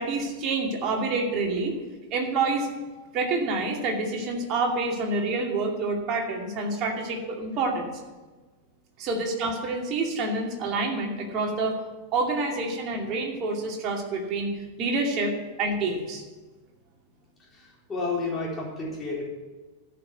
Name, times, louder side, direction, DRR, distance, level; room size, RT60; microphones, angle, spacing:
voice 1, 0.0-1.8 2.1-2.7 3.1-7.9 9.0-11.8 12.1-15.3 15.6-16.2, right 3 dB, 35° right, 1 dB, 2.4 m, -27 dB
voice 2, 17.5-19.2, left 3 dB, 20° left, -3 dB, 3.8 m, -31 dB
13.5 x 5.9 x 9.4 m, 1.3 s
figure-of-eight pair, 90°, 0 cm